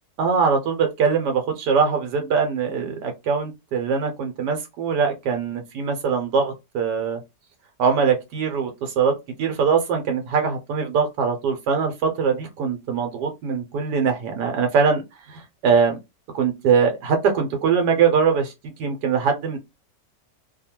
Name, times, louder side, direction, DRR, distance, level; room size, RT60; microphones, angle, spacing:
voice 1, 0.2-7.2 7.8-9.1 9.4-15.0 15.3-16.0 16.3-19.6, right 6 dB, 85° right, 4 dB, 1.2 m, -22 dB
2.7 x 2.3 x 2.9 m, 0.22 s
omnidirectional pair, 1.8 m